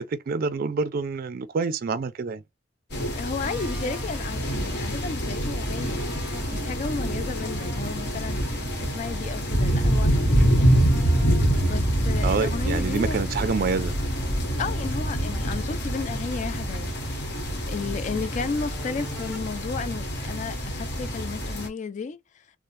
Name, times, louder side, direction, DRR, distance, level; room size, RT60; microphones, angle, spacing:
voice 1, 0.0-2.4 12.2-13.9, right 4 dB, 50° right, 0.4 m, -27 dB
sound 1, 2.9-21.7, equal, 60° left, 1.1 m, -26 dB
voice 2, 3.1-6.0 6.5-8.5 8.8-11.0 11.6-13.2 14.6-16.9 17.6-22.2, left 4 dB, 40° left, 0.3 m, -33 dB
sound 2, 3.4-19.4, right 1 dB, 5° right, 1.1 m, -44 dB
3.1 x 2.0 x 2.6 m
head